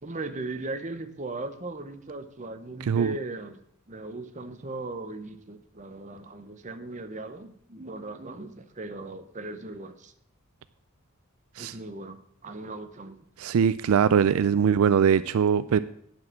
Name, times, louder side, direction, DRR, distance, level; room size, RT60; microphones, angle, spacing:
voice 1, 0.0-3.6 3.9-10.1 11.6-13.2, right 2 dB, 35° right, 8 dB, 0.8 m, -38 dB
voice 2, 2.9-3.2 11.6-11.7 13.4-15.8, right 7 dB, 75° right, 15 dB, 0.3 m, -22 dB
9.6 x 6.3 x 7.3 m, 0.70 s
head